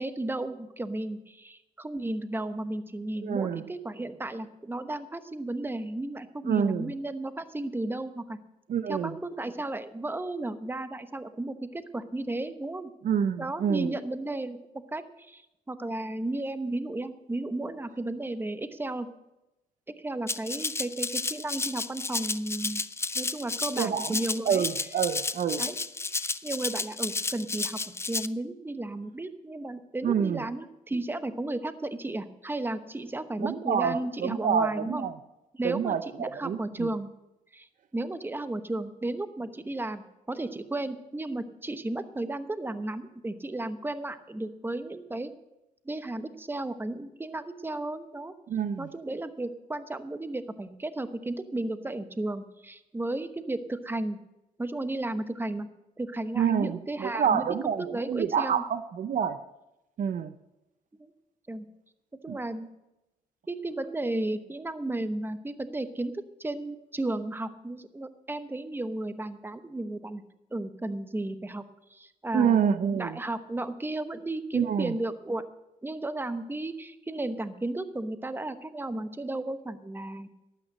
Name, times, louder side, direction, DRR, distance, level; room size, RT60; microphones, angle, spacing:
voice 1, 0.0-8.4 8.9-12.9 13.4-14.6 14.9-15.4 15.7-19.1 20.0-22.8 23.1-24.7 25.6-25.8 26.4-35.1 35.5-37.1 37.5-37.7 37.9-45.3 45.8-48.3 48.8-54.2 54.6-55.7 56.0-58.6 61.0-61.1 61.5-61.6 62.2-62.7 63.5-70.2 70.5-71.6 71.9-75.4 75.8-80.3, right 2 dB, 15° right, 10 dB, 1.0 m, -34 dB
voice 2, 3.2-3.6 6.5-6.9 8.7-9.1 13.0-13.9 23.8-24.2 24.5-25.6 30.0-30.4 33.4-35.1 35.6-36.9 48.5-48.9 56.3-59.4 60.0-60.3 62.3-62.4 72.3-73.2 74.5-74.9, right 8 dB, 55° right, 12 dB, 0.6 m, -27 dB
Rattle (instrument), 20.3-28.3, left 3 dB, 15° left, 0.5 m, -32 dB
12.0 x 9.2 x 6.5 m, 0.93 s
cardioid pair, 80°, 16 cm